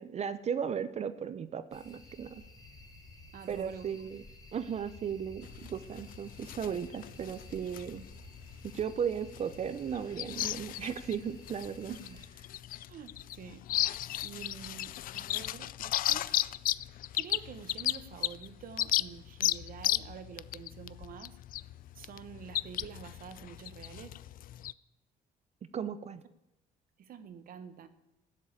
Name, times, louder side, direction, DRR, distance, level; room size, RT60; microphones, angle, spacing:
voice 1, 0.0-2.4 3.5-4.2 4.5-8.0 8.7-12.0 25.7-26.2, right 7 dB, 40° right, 13 dB, 0.7 m, -36 dB
sound 1, 1.7-12.3, left 2 dB, 20° left, 2.8 m, -53 dB
voice 2, 3.3-3.9 11.9-12.2 12.9-13.6 14.2-16.4 17.1-21.4 21.9-24.1 27.0-27.9, right 8 dB, 60° right, 11 dB, 1.3 m, -47 dB
sound 2, 5.4-24.7, left 13 dB, 55° left, 0.4 m, -35 dB
12.0 x 7.5 x 8.3 m, 0.93 s
cardioid pair, 110°, 17 cm